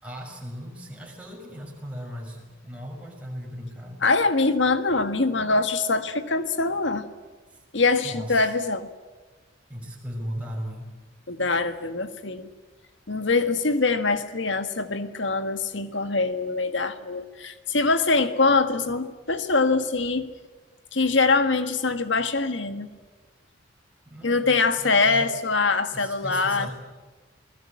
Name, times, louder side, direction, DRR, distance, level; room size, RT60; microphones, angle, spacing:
voice 1, 0.0-4.0 7.5-7.6 8.0-8.5 9.7-10.9 24.1-25.3 25.9-26.7, equal, 5° right, -1 dB, 6.0 m, -37 dB
voice 2, 4.0-7.1 7.7-8.9 11.3-12.5 13.1-20.3 20.9-22.9 24.2-26.7, left 3 dB, 70° left, 9 dB, 1.7 m, -23 dB
28.5 x 19.5 x 8.6 m, 1.3 s
head